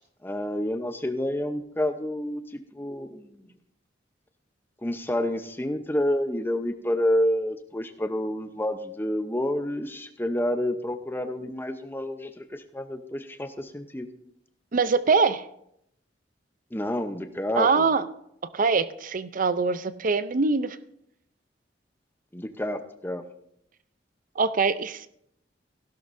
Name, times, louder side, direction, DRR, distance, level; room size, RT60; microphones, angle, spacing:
voice 1, 0.2-3.5 4.8-14.1 16.7-17.9 22.3-23.2, left 1 dB, 10° left, 8 dB, 0.8 m, -29 dB
voice 2, 14.7-15.4 17.5-18.0 18.5-20.8 24.4-25.1, right 4 dB, 50° right, 14 dB, 0.6 m, -23 dB
16.0 x 11.5 x 2.6 m, 0.74 s
head